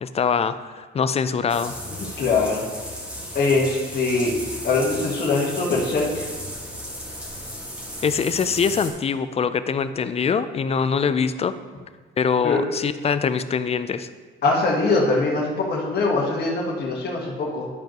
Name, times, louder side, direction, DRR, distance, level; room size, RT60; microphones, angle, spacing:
voice 1, 0.0-1.8 8.0-11.5 12.2-14.1, left 6 dB, 30° left, 13 dB, 0.4 m, -23 dB
sound 1, 1.5-8.9, equal, 5° right, 1.8 m, -35 dB
voice 2, 1.9-2.6 3.3-4.3 4.6-6.3 12.4-12.6 14.4-17.7, left 3 dB, 55° left, -3 dB, 1.5 m, -22 dB
11.0 x 5.2 x 3.0 m, 1.4 s
cardioid pair, 90°, 20 cm